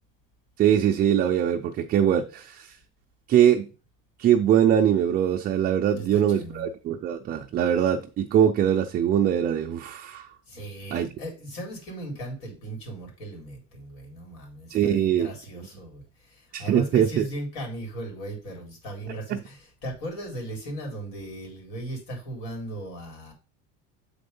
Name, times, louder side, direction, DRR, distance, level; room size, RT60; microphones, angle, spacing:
voice 1, 0.6-2.8 3.3-3.7 4.2-10.3 10.9-11.1 14.7-15.3 16.5-17.2 19.3-19.4, right 9 dB, 30° right, 0.4 m, -22 dB
voice 2, 5.9-6.7 10.5-23.3, right 1 dB, 80° left, 4.3 m, -37 dB
7.1 x 4.3 x 5.3 m
cardioid pair, 165°, 33 cm